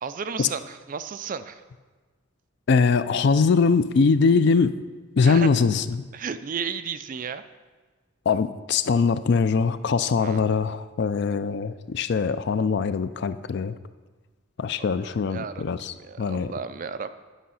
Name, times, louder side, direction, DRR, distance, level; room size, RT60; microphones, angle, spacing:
voice 1, 0.0-1.6 5.2-5.5 6.1-7.4 10.2-10.4 15.3-15.6 16.0-17.1, right 6 dB, 40° right, 12 dB, 0.4 m, -33 dB
voice 2, 2.7-4.7 5.2-6.0 8.3-13.8 14.6-16.5, left 5 dB, 50° left, 13 dB, 0.4 m, -22 dB
10.0 x 6.2 x 5.5 m, 1.3 s
head